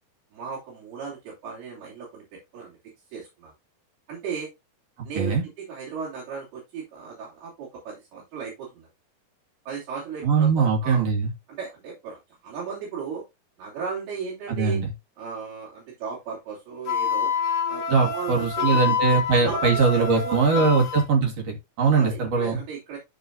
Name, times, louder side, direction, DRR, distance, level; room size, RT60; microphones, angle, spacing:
voice 1, 0.3-2.8 3.1-3.5 4.1-4.5 5.0-8.9 9.7-11.1 11.5-13.2 13.6-14.8 15.2-17.3 17.7-20.7 21.9-23.0, right 5 dB, 80° right, -7 dB, 5.1 m, -36 dB
voice 2, 10.2-11.3 14.5-14.9 17.9-22.6, right 5 dB, 45° right, 1 dB, 2.6 m, -21 dB
Wind instrument woodwind instrument, 16.9-21.1, left 6 dB, 85° left, 1.2 m, -27 dB
12.0 x 4.6 x 2.7 m, 0.22 s
omnidirectional pair, 4.4 m